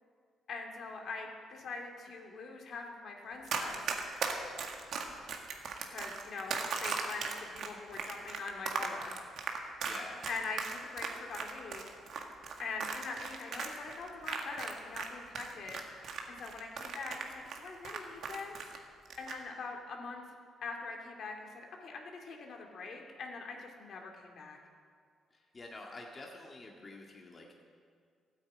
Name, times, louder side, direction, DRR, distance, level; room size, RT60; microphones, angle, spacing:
voice 1, 0.5-3.8 5.9-9.2 10.3-11.8 12.6-15.8 16.3-18.6 19.2-20.2 20.6-24.6, left 4 dB, 60° left, 1 dB, 2.3 m, -43 dB
Run, 3.5-15.1 15.3-18.8 19.1-19.4, right 5 dB, 65° right, 1.7 m, -37 dB
voice 2, 9.8-10.2 25.5-27.6, left 2 dB, 30° left, 0 dB, 1.8 m, -47 dB
13.5 x 9.1 x 8.7 m, 2.1 s
cardioid pair, 90°, 0 cm